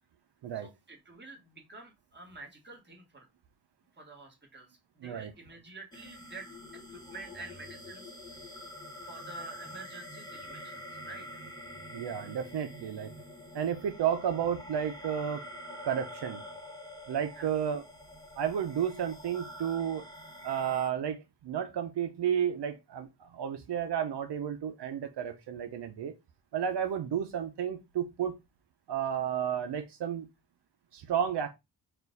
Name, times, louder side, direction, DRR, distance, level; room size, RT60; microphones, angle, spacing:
voice 1, 0.5-3.3 4.0-4.7 5.0-6.5 6.9-8.1 9.0-11.2 17.3-17.5, right 3 dB, 25° right, 1.6 m, -48 dB
voice 2, 5.0-5.3 11.9-13.1 13.5-15.5 15.8-16.4 17.1-17.9 18.4-20.0 20.4-26.1 26.5-28.4 28.9-30.3 30.9-31.5, right 8 dB, 85° right, 0.7 m, -32 dB
sound 1, 5.9-20.9, equal, 10° left, 1.0 m, -46 dB
4.4 x 2.5 x 3.8 m
wide cardioid pair, 125°, 40 cm